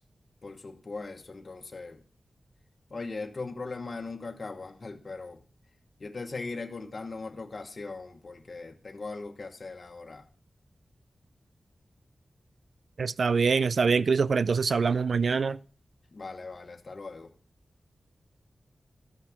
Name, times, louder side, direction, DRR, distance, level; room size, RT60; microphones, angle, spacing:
voice 1, 0.4-2.0 2.9-5.4 6.0-10.3 16.1-17.3, left 3 dB, 55° left, 1.3 m, -39 dB
voice 2, 13.0-15.6, right 5 dB, 75° right, 0.4 m, -24 dB
13.0 x 6.0 x 5.9 m
cardioid pair, 55°, 0 cm